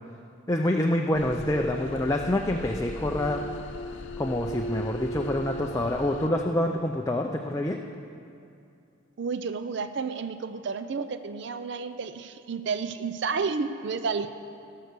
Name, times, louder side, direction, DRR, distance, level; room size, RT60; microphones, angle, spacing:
voice 1, 0.5-3.4 4.2-7.8, left 1 dB, 15° left, 2 dB, 0.4 m, -26 dB
sound 1, 1.1-6.3, equal, 65° left, 0.7 m, -37 dB
voice 2, 9.2-14.3, right 5 dB, 55° right, 10 dB, 0.4 m, -31 dB
16.5 x 6.6 x 6.7 m, 2.5 s
head